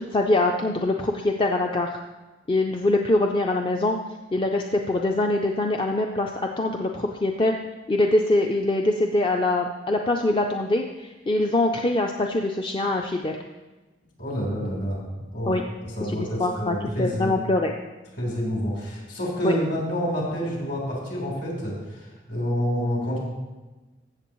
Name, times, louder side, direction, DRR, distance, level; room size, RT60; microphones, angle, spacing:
voice 1, 0.0-2.0 2.5-4.0 4.3-7.5 7.9-13.4 15.5-15.6 16.0-17.7 19.4-19.5, left 2 dB, 25° left, 2 dB, 0.5 m, -23 dB
voice 2, 14.2-15.5 15.8-17.3 18.2-23.2, equal, 60° left, -3 dB, 3.8 m, -28 dB
14.0 x 7.6 x 3.1 m, 1.2 s
head